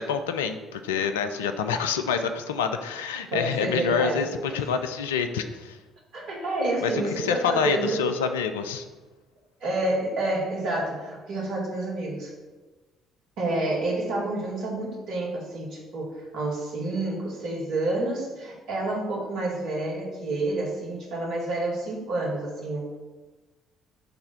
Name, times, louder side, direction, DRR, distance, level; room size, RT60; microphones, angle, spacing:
voice 1, 0.0-5.8 6.8-6.9 7.2-8.9, left 6 dB, 80° left, 8 dB, 0.4 m, -27 dB
voice 2, 3.3-4.3 6.1-8.0 9.6-12.3 13.4-23.0, right 2 dB, 60° right, -3 dB, 2.1 m, -29 dB
6.8 x 3.3 x 5.7 m, 1.3 s
figure-of-eight pair, 50°, 0 cm